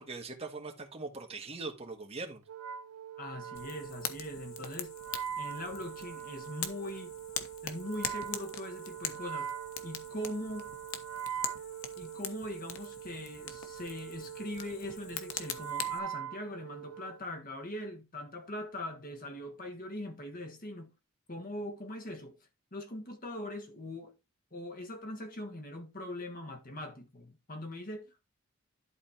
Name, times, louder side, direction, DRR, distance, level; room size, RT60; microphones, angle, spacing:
voice 1, 0.0-2.4, right 3 dB, 30° right, 1.7 m, -41 dB
Wind instrument woodwind instrument, 2.5-17.2, right 9 dB, 90° right, 0.7 m, -42 dB
voice 2, 3.2-4.9 5.4-7.1 7.6-9.5 9.8-10.7 12.0-20.9 21.3-22.3 22.7-24.1 24.5-28.2, left 1 dB, 40° left, 1.5 m, -41 dB
Fire, 3.5-16.0, left 8 dB, 70° left, 1.2 m, -43 dB
11.5 x 4.3 x 4.3 m
head